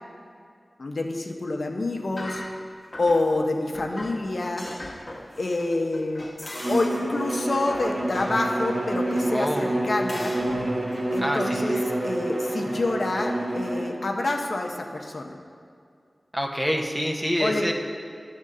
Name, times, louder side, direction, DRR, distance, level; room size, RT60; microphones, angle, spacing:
voice 1, 0.8-2.4 3.0-4.7 5.4-6.3 6.6-10.4 11.1-15.4 17.4-17.7, left 2 dB, 70° left, 3 dB, 0.7 m, -27 dB
sound 1, 2.1-3.4 3.7-8.8 9.6-9.7 10.1-11.2, left 1 dB, 40° left, 1.2 m, -40 dB
Bowed string instrument, 6.5-13.9, right 1 dB, 50° right, 1.6 m, -28 dB
voice 2, 9.3-9.8 11.2-11.8 16.3-17.7, equal, 5° right, 1 dB, 0.8 m, -27 dB
10.5 x 3.7 x 6.6 m, 2.2 s
wide cardioid pair, 60°, 0 cm